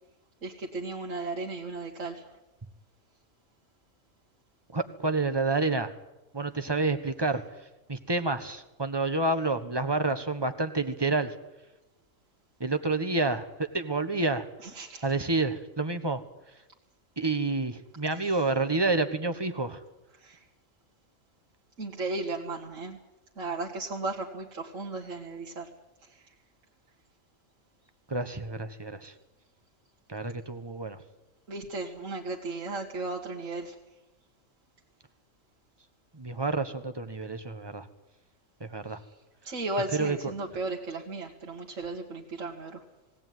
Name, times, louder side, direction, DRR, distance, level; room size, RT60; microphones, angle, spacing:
voice 1, 0.4-2.3 14.6-15.0 18.2-18.3 20.2-20.4 21.8-23.0 23.4-25.7 31.5-33.8 39.4-42.8, right 3 dB, 70° right, -2 dB, 2.1 m, -35 dB
voice 2, 4.7-5.9 6.3-7.4 7.9-11.3 12.6-14.4 15.0-16.2 17.2-19.8 28.1-29.1 30.1-31.0 36.1-37.9 38.6-39.0 39.9-40.3, right 3 dB, 20° right, 8 dB, 1.3 m, -29 dB
20.0 x 17.0 x 9.4 m, 1.0 s
omnidirectional pair, 1.4 m